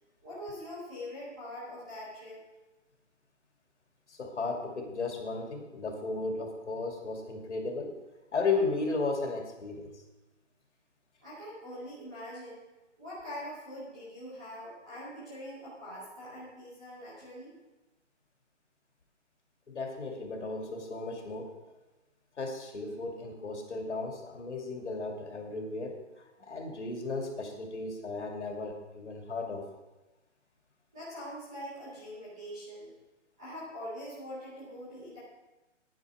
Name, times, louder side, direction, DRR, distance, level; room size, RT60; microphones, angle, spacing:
voice 1, 0.2-2.4 11.2-12.6 13.0-17.5 30.9-32.9 33.4-35.2, equal, 5° right, -11 dB, 0.7 m, -43 dB
voice 2, 4.1-7.9 8.3-9.9 19.7-21.5 22.4-29.7, left 3 dB, 70° left, 2 dB, 2.7 m, -35 dB
10.0 x 10.0 x 4.8 m, 1.1 s
hypercardioid pair, 170°, 37 cm